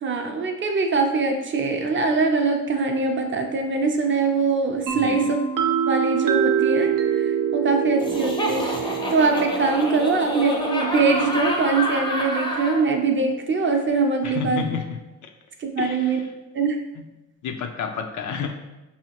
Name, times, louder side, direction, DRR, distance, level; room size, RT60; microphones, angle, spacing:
voice 1, 0.0-5.4 5.9-14.7 15.6-16.2 16.5-16.8, right 4 dB, 35° right, 4 dB, 0.5 m, -23 dB
voice 2, 4.9-5.3 14.2-15.3 15.8-16.2 17.0-17.1 17.4-18.5, left 6 dB, 65° left, 5 dB, 0.4 m, -31 dB
sound 1, 4.9-12.5, right 8 dB, 85° right, 0.6 m, -26 dB
Laughter, 8.0-12.8, left 1 dB, 15° left, 0.5 m, -28 dB
5.5 x 2.7 x 2.9 m, 1.0 s
wide cardioid pair, 155°, 33 cm